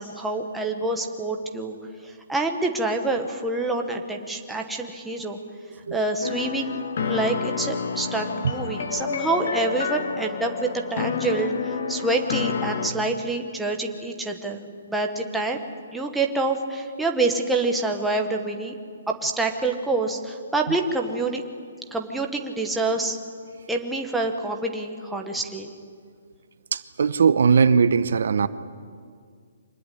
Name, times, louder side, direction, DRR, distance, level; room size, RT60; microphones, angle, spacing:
voice 1, 0.0-1.8 2.0-5.4 5.9-15.6 15.9-18.7 19.1-21.4 21.9-23.2 23.7-25.7, right 2 dB, ahead, 1 dB, 1.0 m, -27 dB
sound 1, 6.2-12.9, left 6 dB, 50° left, 1.5 m, -29 dB
voice 2, 26.7-28.5, right 6 dB, 60° right, 14 dB, 0.9 m, -19 dB
25.0 x 19.5 x 10.0 m, 2.1 s
hypercardioid pair, 180°, 0 cm